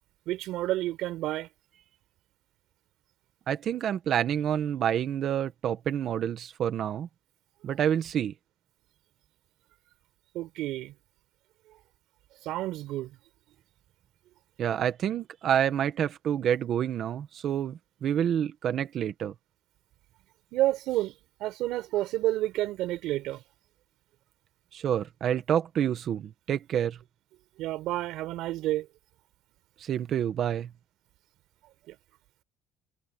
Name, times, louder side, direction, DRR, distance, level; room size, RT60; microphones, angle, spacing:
voice 1, 0.3-1.5 10.3-10.9 12.4-13.1 20.5-21.1 21.4-23.4 27.6-28.9 31.9-32.0, right 15 dB, 65° right, 4.7 m, -30 dB
voice 2, 3.5-7.1 7.6-8.3 14.6-19.3 24.7-27.0 29.8-30.7, right 9 dB, 40° right, 1.7 m, -28 dB
cardioid pair, 165°, 0 cm